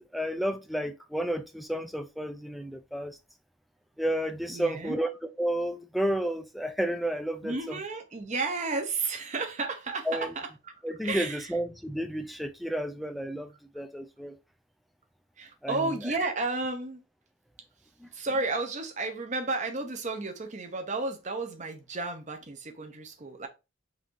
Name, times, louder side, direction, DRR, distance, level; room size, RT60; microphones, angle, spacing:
voice 1, 0.1-3.2 4.0-5.1 5.4-7.8 10.1-10.3 10.8-14.4 15.6-16.3 18.0-18.1, right 1 dB, ahead, 0.4 m, -31 dB
voice 2, 4.5-5.0 7.4-10.5 11.0-11.5 15.4-17.0 18.1-23.5, right 3 dB, 35° right, 0.8 m, -32 dB
5.6 x 2.7 x 3.0 m
head